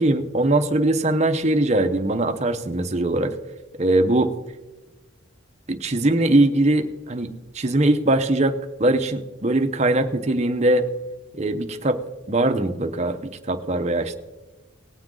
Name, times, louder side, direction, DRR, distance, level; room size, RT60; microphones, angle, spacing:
voice 1, 0.0-3.4 3.8-4.4 5.7-7.3 7.5-10.9 11.3-12.0 12.3-14.2, right 2 dB, 35° right, 8 dB, 0.8 m, -21 dB
19.0 x 7.7 x 3.8 m, 1.1 s
head